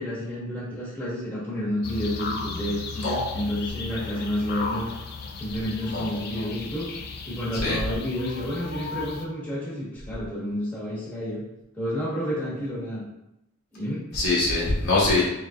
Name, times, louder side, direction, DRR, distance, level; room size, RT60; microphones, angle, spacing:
voice 1, 0.0-4.9 5.4-6.9 7.2-11.4 11.7-13.0 13.7-14.0, equal, 5° left, -8 dB, 1.2 m, -30 dB
sound 1, 1.8-9.2, left 4 dB, 45° left, 0.4 m, -35 dB
voice 2, 5.9-6.4 7.6-7.8 14.1-15.3, left 2 dB, 80° left, -6 dB, 1.2 m, -23 dB
3.9 x 3.5 x 2.4 m, 0.86 s
head